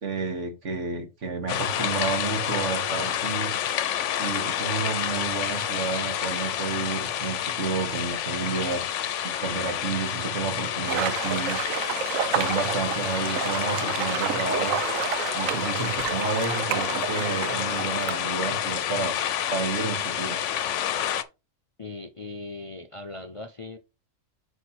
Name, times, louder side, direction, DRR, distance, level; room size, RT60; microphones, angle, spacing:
voice 1, 0.0-3.5 4.2-8.8 9.2-11.6 12.3-14.8 15.3-19.1 19.5-20.4, right 5 dB, 65° right, 2.0 m, -30 dB
sound 1, 1.5-21.2, left 10 dB, 70° left, 0.9 m, -29 dB
sound 2, 10.9-18.2, right 10 dB, 85° right, 1.1 m, -30 dB
voice 2, 21.8-23.8, left 3 dB, 35° left, 0.6 m, -39 dB
6.5 x 5.4 x 4.2 m
omnidirectional pair, 1.4 m